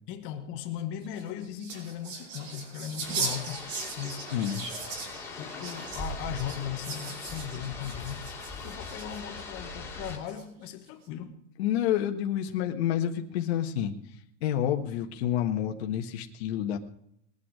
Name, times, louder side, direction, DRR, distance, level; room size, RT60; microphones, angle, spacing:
voice 1, 0.1-3.7 4.0-4.3 5.4-11.4, left 10 dB, 35° left, 1.4 m, -38 dB
sound 1, 1.0-9.4 10.0-10.6, right 4 dB, 80° right, 5.2 m, -38 dB
sound 2, 3.0-10.2, left 2 dB, 5° left, 2.5 m, -41 dB
voice 2, 4.3-4.6 11.6-13.9 14.4-16.8, left 10 dB, 55° left, 1.6 m, -28 dB
21.0 x 9.2 x 4.9 m
supercardioid pair, 165°, 38 cm